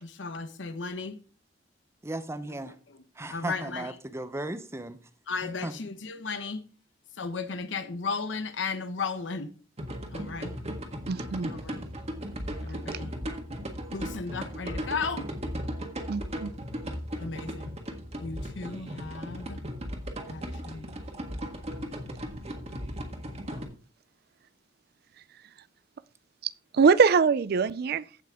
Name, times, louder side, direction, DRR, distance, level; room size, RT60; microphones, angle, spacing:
voice 1, 0.0-1.2 2.5-3.0 3.3-3.9 5.3-6.6 7.1-9.5 10.1-10.6 11.4-11.8 12.6-13.1 13.9-15.3 17.2-17.8 18.2-19.6 20.3-20.9, left 4 dB, 80° left, 0.9 m, -35 dB
voice 2, 2.0-2.7 3.2-5.0 5.6-5.7, right 1 dB, 15° right, 0.7 m, -35 dB
sound 1, 9.8-23.6, equal, 35° right, 1.6 m, -37 dB
voice 3, 11.1-11.5 16.1-16.5 26.7-28.0, right 5 dB, 55° right, 0.4 m, -22 dB
15.0 x 5.8 x 3.5 m
head